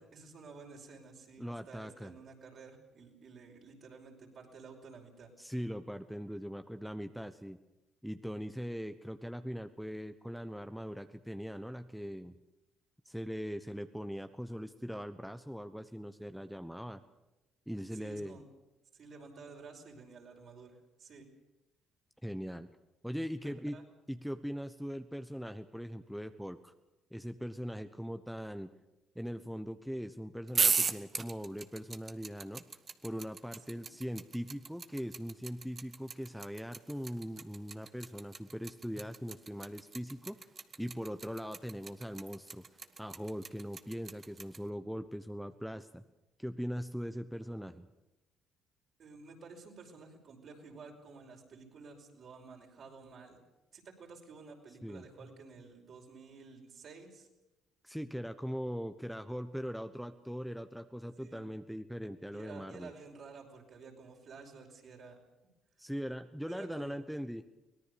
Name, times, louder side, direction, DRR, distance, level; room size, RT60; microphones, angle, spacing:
voice 1, 0.0-5.3 17.9-18.5 18.9-21.3 23.4-23.8 33.7-33.9 49.0-53.4 53.7-57.3 61.2-61.5 62.3-65.2 66.5-66.9, right 4 dB, 55° right, 2 dB, 5.4 m, -52 dB
voice 2, 1.4-2.1 5.4-7.6 8.0-12.3 13.0-17.0 17.7-18.4 22.2-22.7 23.0-23.8 24.1-26.7 27.1-28.7 29.1-32.6 33.0-40.4 40.8-42.6 43.0-46.0 46.4-47.9 54.8-55.0 57.8-62.9 65.8-67.4, equal, ahead, 9 dB, 1.1 m, -40 dB
sound 1, 30.5-44.6, right 5 dB, 40° right, 1.4 m, -35 dB
24.0 x 18.0 x 6.8 m, 0.98 s
supercardioid pair, 65°, 0 cm